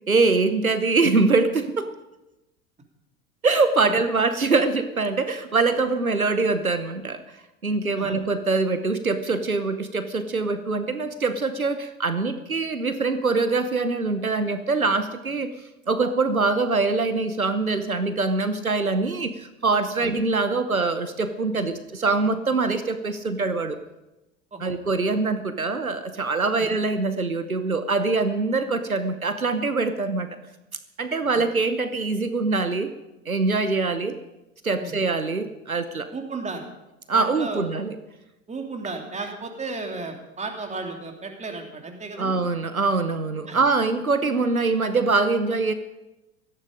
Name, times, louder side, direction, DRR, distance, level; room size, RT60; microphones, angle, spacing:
voice 1, 0.1-1.9 3.4-7.4 7.6-15.5 15.9-23.8 24.6-30.3 31.0-32.9 33.3-34.2 34.6-36.1 37.1-38.0 42.2-45.7, right 3 dB, 90° right, 11 dB, 0.9 m, -23 dB
voice 2, 36.1-36.6 37.1-37.6 38.5-42.3 43.5-43.6, right 3 dB, 15° right, 3 dB, 2.9 m, -34 dB
17.0 x 14.0 x 5.1 m, 0.98 s
figure-of-eight pair, 80°, 41 cm